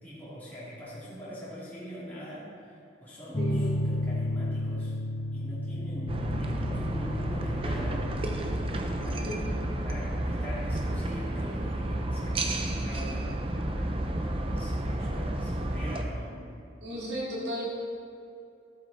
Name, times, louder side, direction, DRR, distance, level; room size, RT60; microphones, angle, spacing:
voice 1, 0.0-5.0 5.3-8.1 9.0-9.5 9.8-13.5 14.5-16.5, equal, 10° left, -10 dB, 2.6 m, -42 dB
sound 1, 3.3-11.0, left 1 dB, 35° left, 0.7 m, -33 dB
voice 2, 3.4-3.8 9.2-9.4 16.8-17.6, equal, 65° right, -5 dB, 2.7 m, -34 dB
sound 2, 6.1-16.0, right 1 dB, 30° right, 0.7 m, -31 dB
14.5 x 7.9 x 4.1 m, 2.6 s
head